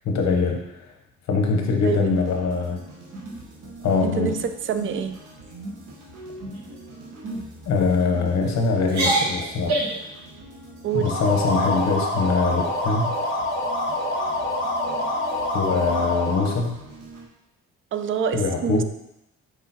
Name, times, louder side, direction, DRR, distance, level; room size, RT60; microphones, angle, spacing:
voice 1, 0.0-0.9 1.3-2.8 3.8-4.4 7.7-9.8 10.9-13.1 15.5-16.8 18.3-18.8, left 4 dB, 65° left, 3 dB, 0.8 m, -23 dB
voice 2, 1.8-2.2 4.0-5.2 10.8-11.1 17.9-18.8, right 7 dB, 45° right, 9 dB, 0.4 m, -26 dB
sound 1, 2.1-17.3, right 1 dB, 90° right, 1.1 m, -45 dB
sound 2, 3.1-3.7 4.1-4.4 4.8-5.0 5.4-5.8 6.4-6.7 7.2-7.4 8.1-8.5 8.8-10.1, right 2 dB, 60° right, 1.3 m, -27 dB
sound 3, 10.9-16.6, left 1 dB, 40° left, 1.6 m, -26 dB
4.7 x 3.7 x 2.7 m, 0.85 s
cardioid pair, 90°, 30 cm